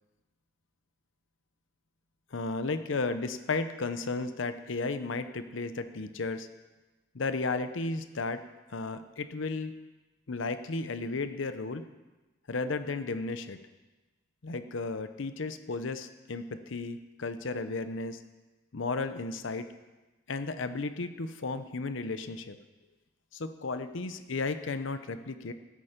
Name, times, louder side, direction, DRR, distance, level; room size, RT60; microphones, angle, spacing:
voice 1, 2.3-6.5 7.1-8.4 8.7-9.7 10.3-11.8 12.5-13.6 14.4-18.2 18.7-19.7 20.3-22.6 23.3-25.5, left 3 dB, 65° left, 10 dB, 0.7 m, -34 dB
15.0 x 8.7 x 5.1 m, 1.1 s
head